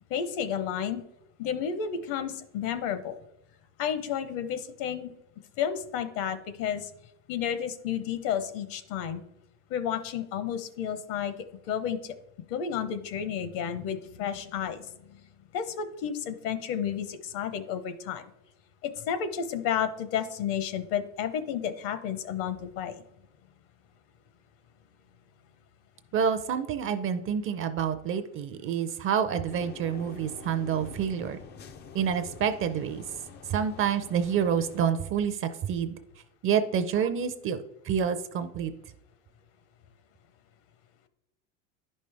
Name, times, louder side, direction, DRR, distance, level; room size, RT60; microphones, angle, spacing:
voice 1, 0.1-1.0 1.4-3.1 3.8-5.1 5.6-6.9 7.3-9.2 9.7-11.3 11.7-12.1 12.5-15.2 15.5-18.2 18.8-23.0, left 8 dB, 60° left, 11 dB, 0.9 m, -31 dB
voice 2, 26.1-31.4 31.9-33.0 33.5-36.0 36.4-37.6 37.8-38.7, right 7 dB, 30° right, 10 dB, 0.5 m, -28 dB
sound 1, 29.5-34.9, left 6 dB, 25° left, 0.3 m, -47 dB
10.0 x 5.3 x 3.4 m, 0.82 s
supercardioid pair, 125°, 41 cm